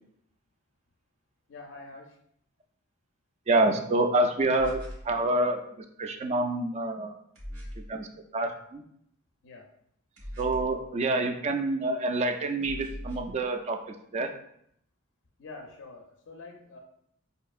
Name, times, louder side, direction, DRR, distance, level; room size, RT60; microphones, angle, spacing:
voice 1, 1.5-2.1 9.4-9.7 15.4-16.8, left 3 dB, 55° left, 2 dB, 0.5 m, -46 dB
voice 2, 3.5-7.1 7.9-8.1 8.3-8.8 10.4-14.3, right 2 dB, 30° right, 6 dB, 0.3 m, -27 dB
sound 1, 4.5-5.1 7.4-7.9 10.2-10.8 12.6-13.4, equal, 80° right, 1.2 m, -40 dB
5.1 x 2.7 x 2.4 m, 0.72 s
head